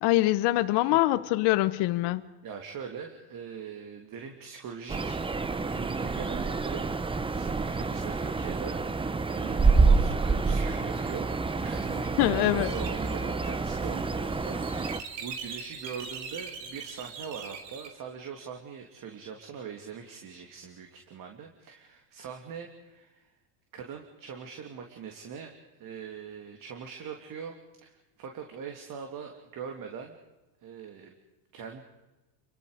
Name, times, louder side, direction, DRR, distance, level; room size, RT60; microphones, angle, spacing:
voice 1, 0.0-2.2 12.2-12.7, left 17 dB, 55° left, 12 dB, 1.2 m, -24 dB
voice 2, 2.4-5.3 5.6-11.3 11.6-23.3 23.7-25.5 25.8-30.2 30.6-31.1 31.5-31.8, right 6 dB, 40° right, 3 dB, 3.0 m, -42 dB
sound 1, 4.9-15.0, right 4 dB, 10° right, 0.9 m, -27 dB
sound 2, 10.9-17.9, right 6 dB, 90° right, 3.7 m, -43 dB
30.0 x 23.5 x 5.1 m, 1.1 s
supercardioid pair, 115°, 49 cm